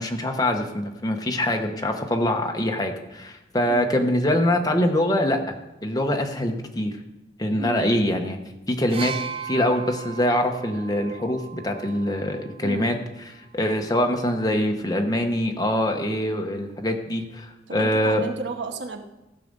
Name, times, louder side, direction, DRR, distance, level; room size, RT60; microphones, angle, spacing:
voice 1, 0.0-6.9 7.4-8.4 8.7-9.1 9.4-12.9 13.5-18.2, left 1 dB, 20° left, 4 dB, 1.1 m, -24 dB
voice 2, 7.6-8.0 12.6-13.0 17.7-19.0, right 3 dB, 90° right, 6 dB, 1.1 m, -33 dB
sound 1, 8.9-12.7 13.7-13.9, right 7 dB, 30° right, 0.5 m, -37 dB
15.5 x 6.7 x 5.3 m, 0.99 s
head